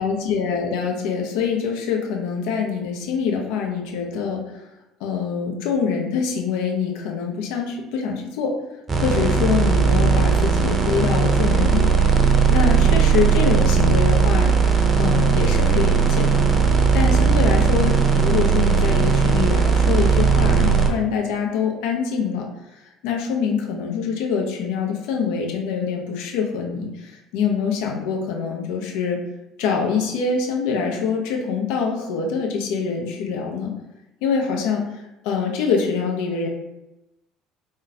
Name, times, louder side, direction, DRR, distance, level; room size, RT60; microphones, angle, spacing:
voice 1, 0.0-4.6 5.0-8.5 9.0-16.5 16.9-22.5 23.0-29.2 29.6-33.7 34.2-36.5, left 6 dB, 70° left, 1 dB, 0.6 m, -25 dB
sound 1, 8.9-20.9, right 5 dB, 35° right, 0.6 m, -17 dB
3.7 x 2.2 x 2.7 m, 0.93 s
hypercardioid pair, 65°, 0 cm